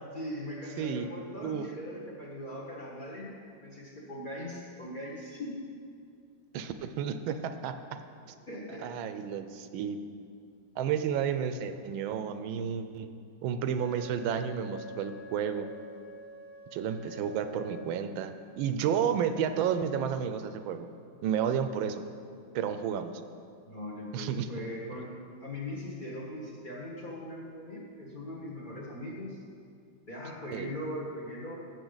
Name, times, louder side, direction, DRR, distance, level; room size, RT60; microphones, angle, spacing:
voice 1, 0.1-5.6 8.2-8.9 23.6-29.4 30.1-31.5, left 1 dB, 35° left, -3 dB, 0.9 m, -40 dB
voice 2, 0.8-1.1 1.4-1.7 6.5-8.0 8.7-10.0 10.8-13.1 13.4-15.7 16.7-20.9 21.2-22.0 22.5-23.2 24.1-24.5 30.5-30.7, right 8 dB, 80° right, 9 dB, 1.3 m, -31 dB
Wind instrument woodwind instrument, 13.7-18.4, left 1 dB, 60° left, 1.0 m, -47 dB
15.0 x 7.1 x 3.9 m, 2.3 s
omnidirectional pair, 2.2 m